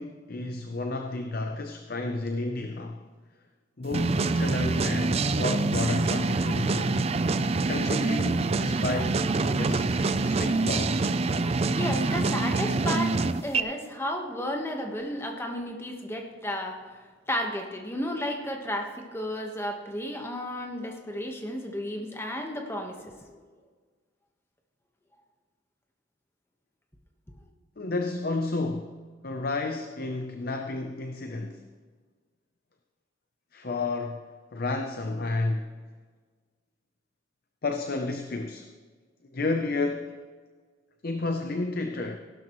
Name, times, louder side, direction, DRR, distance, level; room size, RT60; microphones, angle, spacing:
voice 1, 0.0-3.0 3.8-7.0 7.6-11.0 27.8-29.0 29.2-31.6 33.5-34.2 34.5-35.7 37.6-38.7 39.3-40.2 41.0-42.2, left 2 dB, 50° left, 5 dB, 0.7 m, -31 dB
sound 1, 3.9-13.6, right 3 dB, 30° right, 0.4 m, -25 dB
voice 2, 11.7-13.2 13.4-16.8 17.3-23.4, left 1 dB, 10° left, 2 dB, 1.2 m, -33 dB
16.0 x 12.0 x 3.1 m, 1.5 s
head